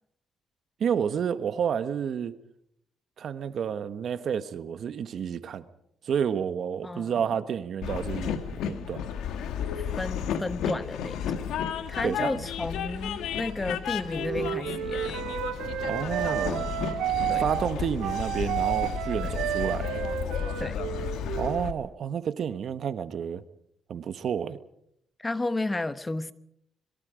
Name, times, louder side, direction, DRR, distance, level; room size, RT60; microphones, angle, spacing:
voice 1, 0.8-2.3 3.2-5.6 6.0-9.0 12.0-12.5 15.8-16.7 17.4-19.9 21.4-23.4 23.9-24.6, right 8 dB, 60° right, 1.3 m, -30 dB
voice 2, 6.8-7.2 9.8-11.5 11.9-15.2 17.3-17.5 19.2-19.4 20.6-20.8 25.2-26.3, left 2 dB, 20° left, 1.0 m, -33 dB
Train, 7.8-21.7, left 8 dB, 85° left, 1.7 m, -33 dB
Wind instrument woodwind instrument, 14.2-21.6, right 11 dB, 85° right, 2.2 m, -31 dB
25.5 x 23.0 x 5.1 m
cardioid pair, 90°, 0 cm